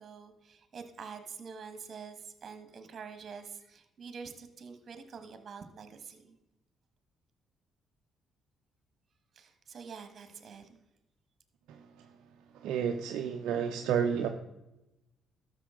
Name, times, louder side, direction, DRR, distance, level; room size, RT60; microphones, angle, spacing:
voice 1, 0.0-6.4 9.3-10.8, right 5 dB, 55° right, 8 dB, 1.4 m, -46 dB
voice 2, 12.6-14.3, right 7 dB, 75° right, 4 dB, 0.6 m, -30 dB
12.5 x 6.7 x 3.7 m, 0.94 s
supercardioid pair, 60°, 0 cm